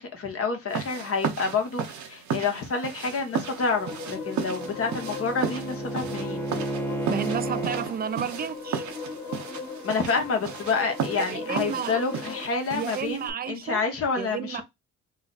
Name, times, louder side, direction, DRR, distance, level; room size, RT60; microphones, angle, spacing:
voice 1, 0.0-6.4 9.8-14.6, left 4 dB, 50° left, 1.3 m, -28 dB
sound 1, 0.7-13.3, right 7 dB, 70° right, 0.9 m, -35 dB
sound 2, 3.1-12.5, left 4 dB, 70° left, 1.4 m, -38 dB
Bowed string instrument, 3.9-8.0, right 2 dB, 10° left, 0.8 m, -33 dB
voice 2, 7.1-8.9 11.3-12.0 12.7-13.8 14.2-14.6, right 8 dB, 35° right, 0.4 m, -31 dB
3.8 x 2.3 x 4.0 m
cardioid pair, 90°, 30 cm